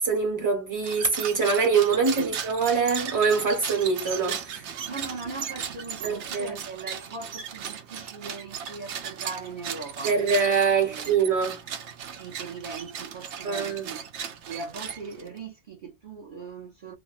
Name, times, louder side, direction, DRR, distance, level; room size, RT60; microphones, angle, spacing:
voice 1, 0.0-4.7 6.0-6.6 10.0-11.6 13.4-13.9, right 5 dB, 15° right, 1.1 m, -24 dB
sound 1, 0.8-15.4, right 8 dB, 80° right, 0.9 m, -37 dB
voice 2, 4.9-10.1 10.8-11.2 12.2-14.1 14.5-16.9, right 4 dB, 50° right, 1.0 m, -39 dB
3.4 x 2.1 x 2.4 m
omnidirectional pair, 1.2 m